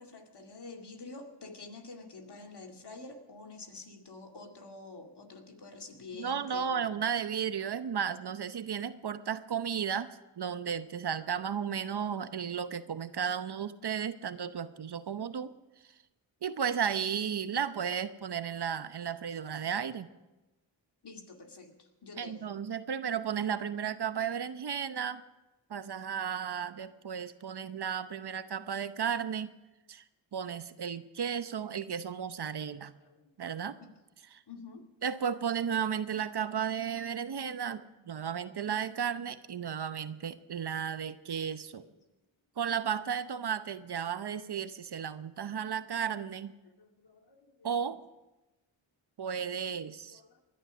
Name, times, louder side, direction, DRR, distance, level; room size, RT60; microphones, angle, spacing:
voice 1, 0.0-6.9 14.6-14.7 21.0-22.5 32.7-33.3 33.8-33.9 34.5-34.9 38.0-38.3 39.6-40.0 40.4-40.5 41.8-42.0 46.6-47.7 49.3-49.5 50.1-50.4, left 3 dB, 55° left, 3 dB, 2.3 m, -49 dB
voice 2, 6.2-15.5 16.4-20.1 22.2-25.2 25.7-29.5 29.9-30.0 30.3-32.9 33.4-33.8 34.3-34.4 35.0-41.8 42.6-46.5 47.6-48.0 49.2-50.2, right 7 dB, 55° right, 12 dB, 0.9 m, -34 dB
19.5 x 11.0 x 6.2 m, 1.1 s
cardioid pair, 50°, 47 cm